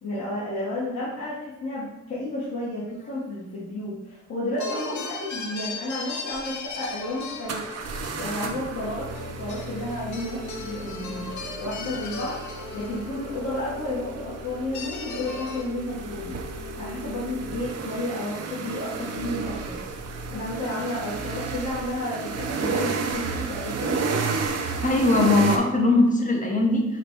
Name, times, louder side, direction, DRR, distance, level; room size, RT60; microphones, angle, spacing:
voice 1, 0.0-7.6 8.2-9.1 9.4-11.3 11.6-12.3 12.7-16.4 16.8-19.7 20.3-24.0, left 1 dB, 55° left, -8 dB, 1.2 m, -31 dB
sound 1, 4.6-13.8 14.7-15.6, left 4 dB, 70° left, 0.6 m, -38 dB
sound 2, 6.3-6.4 7.5-25.6, right 4 dB, 55° right, 0.6 m, -32 dB
voice 2, 24.8-26.8, left 2 dB, 25° left, 1 dB, 0.7 m, -20 dB
5.0 x 2.3 x 4.5 m, 0.90 s
wide cardioid pair, 135°, 30 cm